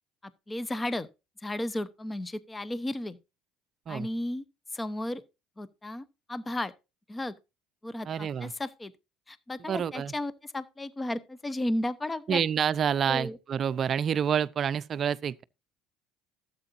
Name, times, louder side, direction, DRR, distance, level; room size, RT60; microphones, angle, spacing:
voice 1, 0.2-1.1 1.4-3.2 3.9-4.4 4.7-5.2 5.6-6.7 7.1-7.3 7.8-8.9 9.3-12.4 13.1-13.4, left 1 dB, 20° left, 0.9 m, -34 dB
voice 2, 8.0-8.5 9.7-10.1 12.3-15.4, right 8 dB, 45° right, 0.5 m, -28 dB
12.5 x 8.1 x 2.6 m
hypercardioid pair, 75°, 0 cm